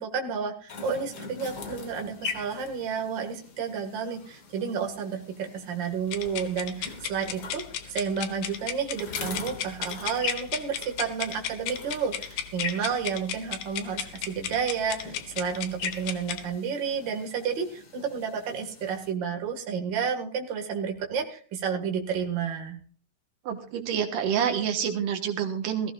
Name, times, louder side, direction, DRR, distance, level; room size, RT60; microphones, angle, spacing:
voice 1, 0.0-22.8, right 6 dB, 40° right, 2 dB, 2.2 m, -31 dB
sound 1, 0.7-19.1, left 5 dB, 50° left, 1.3 m, -42 dB
sound 2, 6.1-16.5, left 10 dB, 85° left, 2.7 m, -35 dB
voice 2, 23.5-25.9, right 8 dB, 85° right, 5 dB, 2.9 m, -27 dB
20.0 x 14.5 x 2.5 m, 0.41 s
omnidirectional pair, 3.7 m